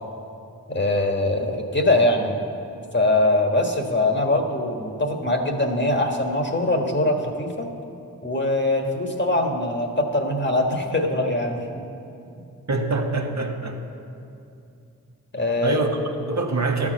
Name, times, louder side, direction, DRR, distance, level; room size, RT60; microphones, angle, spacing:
voice 1, 0.7-2.4 2.9-7.7 8.2-11.8 15.3-15.8, left 1 dB, 30° left, 2 dB, 1.5 m, -22 dB
voice 2, 12.7-13.8 15.6-16.9, right 2 dB, 50° right, 1 dB, 1.3 m, -24 dB
12.0 x 4.9 x 7.6 m, 2.7 s
cardioid pair, 40°, 36 cm